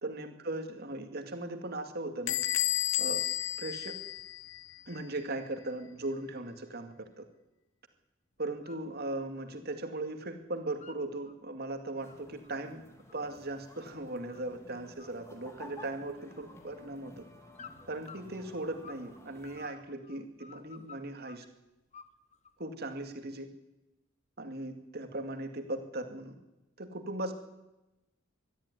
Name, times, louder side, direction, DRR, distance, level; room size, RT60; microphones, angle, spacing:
voice 1, 0.0-2.4 3.0-3.2 3.6-3.9 4.9-7.2 8.4-12.8 13.1-17.2 17.9-21.5 22.6-23.5 24.4-26.4 26.8-27.3, right 2 dB, 50° right, 6 dB, 2.3 m, -38 dB
Bell / Door, 2.3-4.8, left 13 dB, 70° left, 0.8 m, -32 dB
sound 1, 8.4-8.9 9.2-10.2 10.4-11.4 11.8-14.6 15.0-15.4 15.8-16.7 17.5-19.1 19.4-21.5 21.9-22.7, left 6 dB, 35° left, 1.1 m, -53 dB
sound 2, 12.0-19.7, left 1 dB, 15° left, 2.5 m, -54 dB
22.5 x 12.5 x 9.7 m, 0.98 s
head